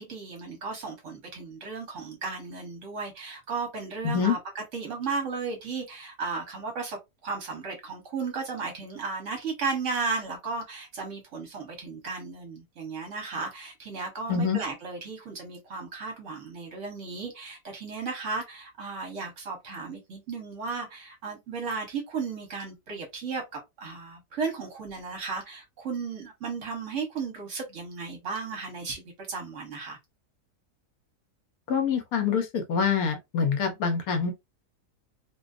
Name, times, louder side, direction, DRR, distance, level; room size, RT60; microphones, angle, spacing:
voice 1, 0.0-29.0 29.3-30.0, right 4 dB, 55° right, 1.0 m, -35 dB
voice 2, 4.0-4.4 14.3-14.6 31.7-34.3, left 6 dB, 70° left, 1.0 m, -25 dB
2.6 x 2.2 x 2.4 m
omnidirectional pair, 1.7 m